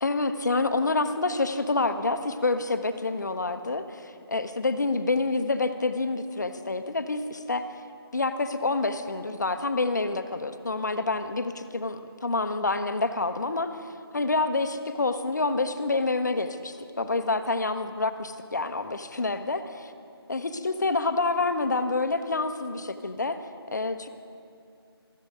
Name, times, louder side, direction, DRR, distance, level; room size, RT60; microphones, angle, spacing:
voice 1, 0.0-7.7 8.1-13.7 14.1-19.9 20.3-23.4 23.7-24.1, left 3 dB, 45° left, 9 dB, 0.6 m, -27 dB
13.5 x 10.5 x 5.2 m, 2.4 s
figure-of-eight pair, 160°, 13 cm